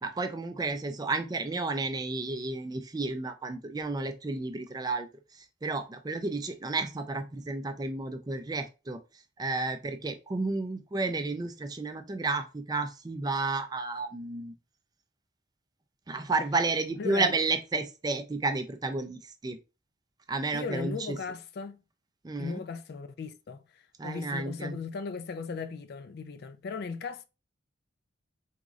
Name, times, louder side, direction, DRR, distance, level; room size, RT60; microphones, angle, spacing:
voice 1, 0.0-9.0 9.4-14.5 16.1-19.6 20.3-21.2 22.2-22.6 24.0-24.8, right 3 dB, 20° right, 0.4 m, -32 dB
voice 2, 17.0-17.3 20.5-21.8 22.4-27.2, left 5 dB, 55° left, 0.3 m, -37 dB
3.6 x 3.0 x 2.4 m
head